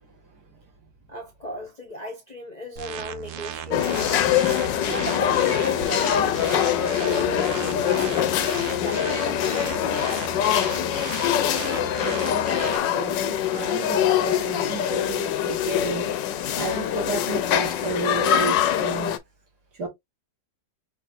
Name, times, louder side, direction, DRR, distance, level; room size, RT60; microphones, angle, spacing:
voice 1, 1.1-4.0 4.8-8.4 8.8-9.9, left 1 dB, 30° left, 0.9 m, -35 dB
sound 1, 2.8-12.8, right 10 dB, 80° right, 0.7 m, -36 dB
sound 2, 3.7-19.2, left 10 dB, 75° left, 1.3 m, -24 dB
voice 2, 11.6-19.2 19.7-19.9, right 3 dB, 60° right, 2.3 m, -33 dB
6.2 x 3.0 x 2.6 m
omnidirectional pair, 2.0 m